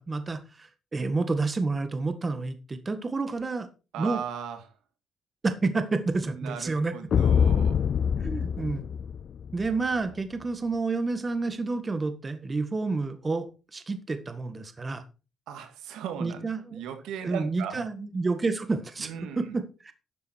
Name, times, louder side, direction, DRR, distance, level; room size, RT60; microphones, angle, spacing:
voice 1, 0.0-3.7 4.0-4.2 5.4-6.9 8.2-8.8 9.5-15.0 16.2-16.8 17.2-19.9, right 3 dB, 30° right, 1.7 m, -29 dB
voice 2, 3.9-4.6 6.3-7.8 9.7-9.8 15.5-17.8 19.0-19.4, right 8 dB, 90° right, 2.1 m, -37 dB
sound 1, 7.1-9.7, left 7 dB, 55° left, 0.5 m, -24 dB
12.0 x 7.4 x 4.5 m
cardioid pair, 90°, 0 cm